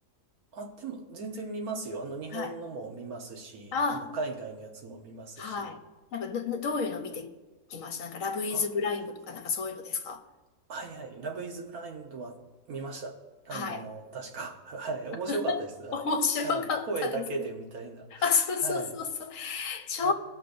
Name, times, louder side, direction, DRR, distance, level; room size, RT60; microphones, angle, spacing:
voice 1, 0.5-5.7 8.5-8.7 10.7-12.4 12.7-13.2 13.4-16.1 16.4-19.0 20.0-20.1, right 3 dB, 70° right, 1.5 m, -37 dB
voice 2, 3.7-4.1 5.4-5.8 6.1-7.3 7.7-10.2 13.5-13.8 15.3-15.6 15.9-17.2 18.2-20.1, left 5 dB, 60° left, 1.2 m, -30 dB
19.5 x 6.7 x 2.6 m
omnidirectional pair, 1.6 m